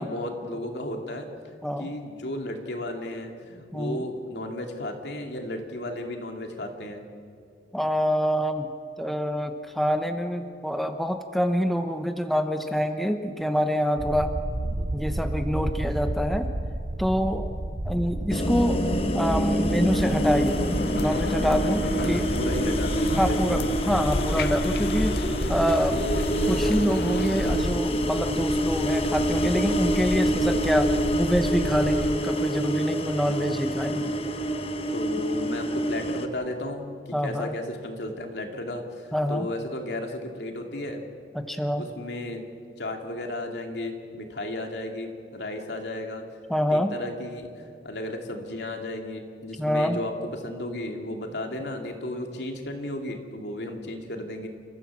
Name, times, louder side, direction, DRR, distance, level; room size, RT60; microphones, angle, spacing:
voice 1, 0.0-7.0 14.7-14.9 18.0-18.1 22.0-23.7 25.9-26.3 33.2-33.4 34.9-36.8 37.2-41.0 41.8-42.4 42.8-46.2 46.7-54.5, left 1 dB, 80° left, 3 dB, 2.6 m, -34 dB
voice 2, 3.7-4.0 7.7-8.7 9.0-14.3 14.9-16.5 17.0-17.5 17.8-18.8 19.1-22.2 23.2-26.1 26.5-34.1 37.1-37.5 39.1-39.5 41.3-41.8 46.5-46.9 49.6-50.0, equal, ahead, 6 dB, 0.9 m, -26 dB
Low deep background, 14.0-32.2, right 1 dB, 45° right, 0.8 m, -32 dB
sound 1, 18.3-36.3, equal, 35° left, 1.1 m, -26 dB
sound 2, 19.9-27.7, left 2 dB, 60° left, 0.7 m, -32 dB
28.5 x 15.0 x 7.5 m, 2.3 s
head